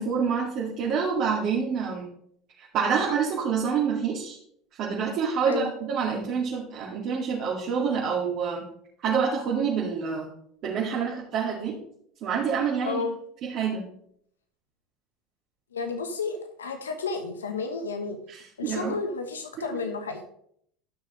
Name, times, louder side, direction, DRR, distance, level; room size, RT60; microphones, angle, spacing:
voice 1, 0.0-2.1 2.6-4.4 4.8-8.6 9.0-10.3 10.6-11.8 12.2-13.0 13.4-13.8 18.3-18.9 19.6-19.7, right 6 dB, 50° right, -6 dB, 2.1 m, -27 dB
voice 2, 12.8-13.1 15.7-18.2 18.6-20.2, left 4 dB, 90° left, 7 dB, 1.0 m, -31 dB
12.5 x 6.2 x 3.1 m, 0.67 s
hypercardioid pair, 80°, 0 cm